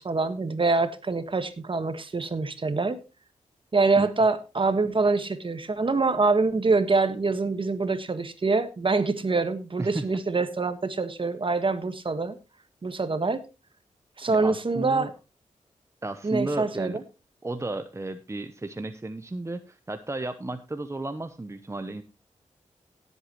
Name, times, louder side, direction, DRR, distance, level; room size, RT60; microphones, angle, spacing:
voice 1, 0.0-3.0 3.7-12.4 12.8-13.4 14.2-15.1 16.2-17.0, right 3 dB, 45° right, 11 dB, 1.5 m, -25 dB
voice 2, 14.3-15.1 16.0-17.0 17.4-22.0, right 2 dB, 20° right, 10 dB, 0.9 m, -33 dB
17.5 x 8.2 x 3.1 m, 0.28 s
cardioid pair, 60°, 13 cm